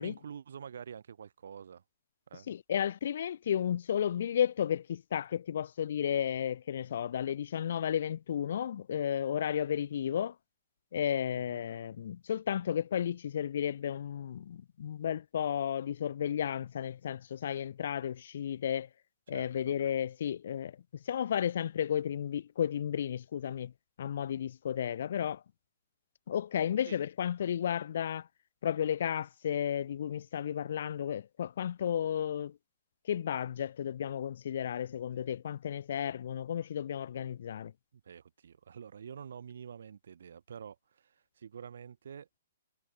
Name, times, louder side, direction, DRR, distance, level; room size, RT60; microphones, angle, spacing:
voice 1, 0.0-1.8 2.3-2.5 11.3-11.6 19.3-19.8 26.9-27.0 38.0-42.3, right 7 dB, 70° right, 1.9 m, -47 dB
voice 2, 2.5-10.4 10.9-18.9 19.3-23.7 24.0-25.4 26.3-28.3 28.6-32.6 33.1-37.7, left 9 dB, 55° left, 0.4 m, -33 dB
hypercardioid pair, 165°, 0 cm